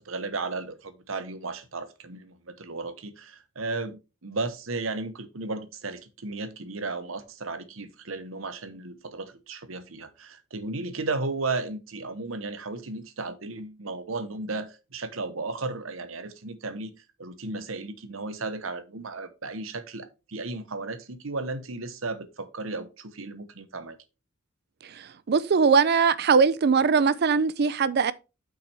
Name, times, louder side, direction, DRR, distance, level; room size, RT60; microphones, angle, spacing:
voice 1, 0.0-16.9 17.2-24.0, right 3 dB, 80° right, 1.0 m, -34 dB
voice 2, 24.9-28.1, right 5 dB, 55° right, 0.5 m, -21 dB
8.4 x 5.9 x 3.4 m
head